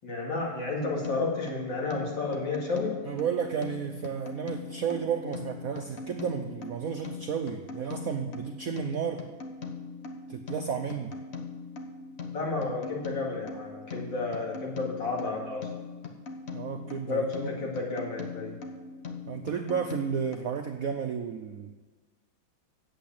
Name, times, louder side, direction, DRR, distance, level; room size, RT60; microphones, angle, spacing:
voice 1, 0.0-3.0 12.3-15.7 17.1-18.5, left 3 dB, 65° left, -2 dB, 3.0 m, -31 dB
sound 1, 0.8-20.4, left 4 dB, 45° left, 1.0 m, -41 dB
voice 2, 3.1-9.2 10.3-11.2 16.5-17.5 19.3-21.7, right 7 dB, 70° right, 5 dB, 0.8 m, -32 dB
8.2 x 8.1 x 8.7 m, 1.4 s
omnidirectional pair, 2.2 m